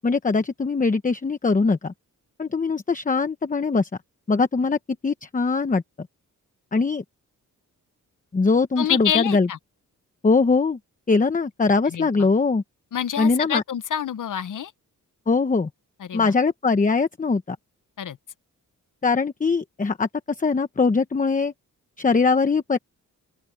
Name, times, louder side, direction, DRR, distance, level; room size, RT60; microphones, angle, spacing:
voice 1, 0.0-1.9 2.4-3.9 4.3-4.8 5.0-6.1 6.7-7.0 8.3-9.5 10.2-10.8 11.1-12.6 13.2-13.6 15.3-15.7 16.1-17.6 19.0-21.5 22.0-22.8, left 4 dB, 25° left, 1.0 m, -21 dB
voice 2, 8.8-9.6 11.9-12.3 12.9-14.7 16.0-16.3 18.0-18.2, left 9 dB, 65° left, 1.0 m, -27 dB
open air
wide cardioid pair, 140°, 33 cm